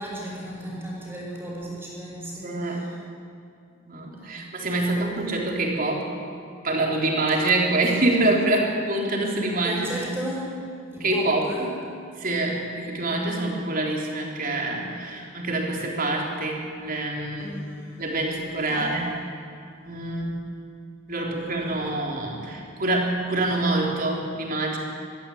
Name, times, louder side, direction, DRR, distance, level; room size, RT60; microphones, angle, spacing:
voice 1, 0.0-2.9 4.2-5.1 9.6-10.5 10.9-11.7 17.4-18.0 18.6-19.1 21.3-21.9, equal, 10° right, -6 dB, 6.1 m, -35 dB
voice 2, 2.4-2.8 3.9-6.1 6.6-10.0 11.0-11.5 12.2-17.6 18.0-19.1 19.8-20.3 21.1-24.8, right 2 dB, 45° right, -1 dB, 3.9 m, -25 dB
23.0 x 14.5 x 8.7 m, 2.3 s
head